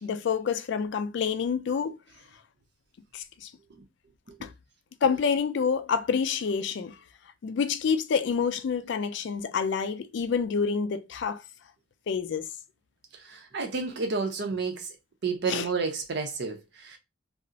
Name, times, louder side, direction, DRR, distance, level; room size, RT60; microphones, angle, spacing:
voice 1, 0.0-2.0 3.1-3.5 4.4-4.5 5.0-7.0 7.4-11.4 12.1-12.5 15.5-15.7, left 6 dB, 65° left, 0.3 m, -28 dB
voice 2, 13.2-14.9 15.2-17.0, right 4 dB, 60° right, 0.6 m, -31 dB
2.4 x 2.0 x 3.8 m
head